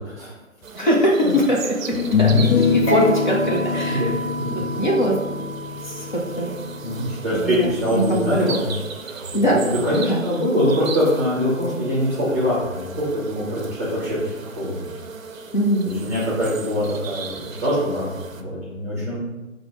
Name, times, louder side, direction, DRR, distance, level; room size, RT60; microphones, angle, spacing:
sound 1, 0.6-18.4, right 5 dB, 75° right, 0.6 m, -37 dB
voice 1, 0.7-1.7 2.1-4.1 4.5-5.2 5.8-6.6 7.3-8.2 9.3-9.6 10.0-10.2 15.5-15.9, equal, 35° left, -3 dB, 0.5 m, -22 dB
sound 2, 0.8-0.9 1.9-7.2, left 6 dB, 85° left, 0.5 m, -24 dB
sound 3, 2.9-9.7, right 2 dB, 15° left, 1.2 m, -33 dB
voice 2, 3.9-4.5 6.8-9.3 9.5-14.8 16.0-19.2, equal, 10° right, -8 dB, 0.6 m, -23 dB
4.8 x 2.0 x 3.6 m, 1.1 s
figure-of-eight pair, 140°, 41 cm